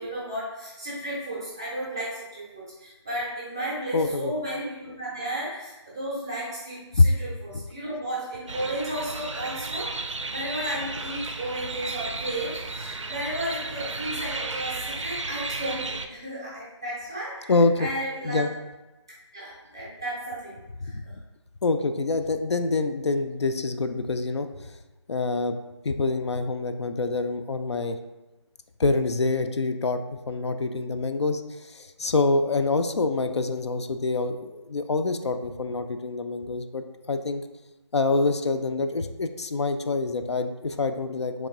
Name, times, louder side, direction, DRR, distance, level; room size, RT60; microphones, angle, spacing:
voice 1, 0.0-18.5 19.3-20.6 20.8-21.2, right 1 dB, 10° right, -7 dB, 0.4 m, -34 dB
voice 2, 3.9-4.3 7.0-7.1 7.5-7.6 17.5-17.9 18.2-18.5 20.9-21.0 21.6-24.5 25.1-25.5 25.8-28.0 28.8-30.0 30.3-37.4 37.9-41.5, left 3 dB, 65° left, 8 dB, 0.4 m, -26 dB
sound 1, 8.5-16.1, right 3 dB, 90° right, 0.5 m, -34 dB
3.6 x 3.1 x 3.5 m, 1.1 s
figure-of-eight pair, 165°, 15 cm